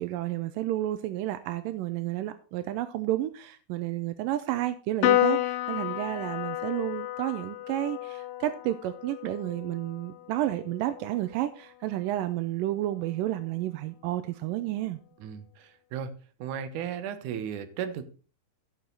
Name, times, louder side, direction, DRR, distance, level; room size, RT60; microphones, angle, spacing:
voice 1, 0.0-15.0, right 14 dB, 85° right, 2.0 m, -31 dB
Piano, 5.0-11.7, left 14 dB, 85° left, 2.7 m, -31 dB
voice 2, 15.2-16.1 16.4-18.0, right 8 dB, 65° right, 2.1 m, -35 dB
15.5 x 6.5 x 4.0 m
omnidirectional pair, 4.6 m